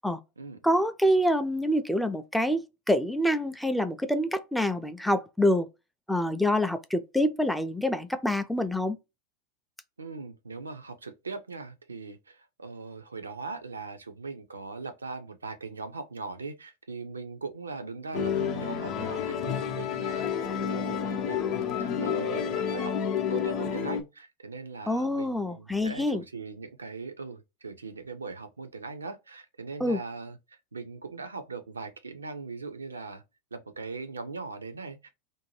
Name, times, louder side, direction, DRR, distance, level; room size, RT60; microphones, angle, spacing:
voice 1, 0.6-5.7 6.1-9.0 24.9-26.2 29.8-30.0, equal, ahead, 0.4 m, -26 dB
voice 2, 10.0-33.2 33.5-35.1, right 4 dB, 85° right, 0.5 m, -40 dB
Musical instrument, 18.1-24.0, left 7 dB, 45° left, 0.6 m, -30 dB
2.6 x 2.2 x 3.0 m
figure-of-eight pair, 90°, 0 cm